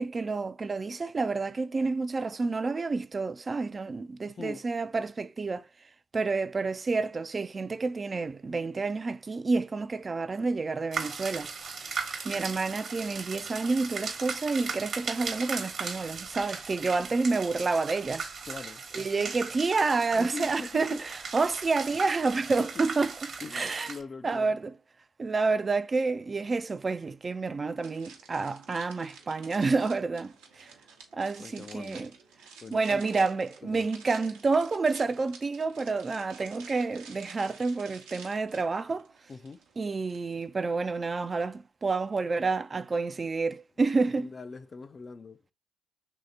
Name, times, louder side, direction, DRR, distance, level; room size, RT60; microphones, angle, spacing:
voice 1, 0.0-5.7 6.1-11.5 12.2-18.3 18.9-23.1 23.5-23.9 24.2-24.7 25.2-30.7 31.1-32.1 32.7-39.1 39.8-44.3, right 4 dB, 35° right, 0.3 m, -29 dB
sound 1, 10.9-24.0, right 5 dB, 55° right, 1.0 m, -37 dB
voice 2, 18.5-18.8 20.1-21.0 22.7-22.8 23.4-24.6 31.4-32.1 32.6-33.0 33.6-33.9 39.3-39.6 44.2-45.4, left 4 dB, 40° left, 0.4 m, -42 dB
sound 2, 27.8-40.5, right 5 dB, 80° right, 0.8 m, -51 dB
3.1 x 2.8 x 3.8 m
hypercardioid pair, 45°, 0 cm